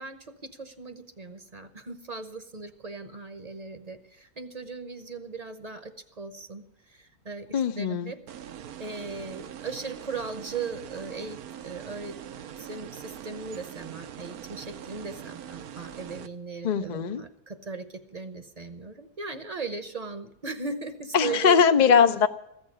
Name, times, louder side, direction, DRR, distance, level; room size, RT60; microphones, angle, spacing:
voice 1, 0.0-7.5 7.8-8.2 8.8-12.2 12.6-21.6 21.9-22.0, right 4 dB, 35° right, 10 dB, 0.8 m, -38 dB
voice 2, 7.5-8.1 16.6-17.2 21.1-22.3, left 6 dB, 60° left, 8 dB, 0.4 m, -21 dB
sound 1, 8.3-16.3, right 10 dB, 85° right, 1.3 m, -42 dB
14.5 x 7.0 x 9.8 m, 0.81 s
omnidirectional pair, 1.5 m